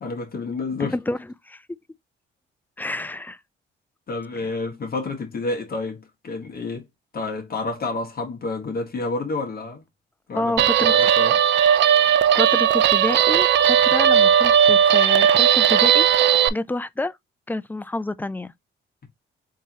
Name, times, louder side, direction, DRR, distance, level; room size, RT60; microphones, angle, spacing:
voice 1, 0.0-0.9 4.1-6.8 7.1-9.8 10.3-11.3, left 3 dB, 50° left, 1.6 m, -29 dB
voice 2, 2.8-3.4 4.4-4.5 10.3-10.9 12.3-16.1 16.5-17.2 17.5-18.5, left 2 dB, 10° left, 0.3 m, -28 dB
Guitar, 10.6-16.5, right 9 dB, 65° right, 0.5 m, -17 dB
3.8 x 2.8 x 4.1 m
cardioid pair, 90°, 20 cm